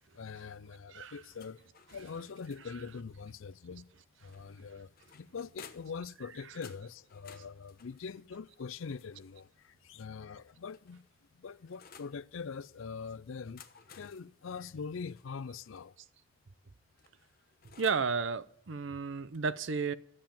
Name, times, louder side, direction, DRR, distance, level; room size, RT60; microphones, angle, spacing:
voice 1, 0.1-1.6 1.9-3.9 4.2-11.0 11.3-16.0, left 5 dB, 75° left, 0.5 m, -43 dB
sound 1, 1.4-2.9 4.3-6.1 6.6-9.5 10.4-12.2 13.3-15.9 17.0-18.1, left 6 dB, 45° left, 1.0 m, -57 dB
voice 2, 17.8-19.9, right 5 dB, 65° right, 0.6 m, -32 dB
14.0 x 7.5 x 8.9 m
head